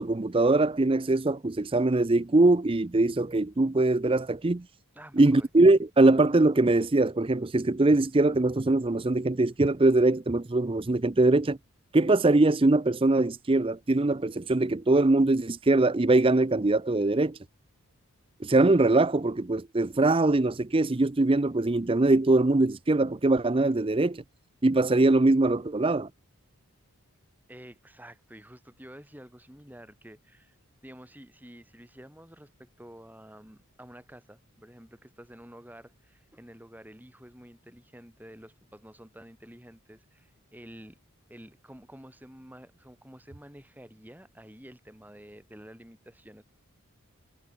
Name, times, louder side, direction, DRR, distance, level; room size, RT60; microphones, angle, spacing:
voice 1, 0.0-4.6 5.2-11.6 11.9-17.4 18.4-24.2 24.6-26.1, right 2 dB, 25° right, 0.5 m, -22 dB
voice 2, 4.9-5.5 27.5-30.6 30.8-41.0 41.3-46.4, equal, 10° right, 4.5 m, -50 dB
head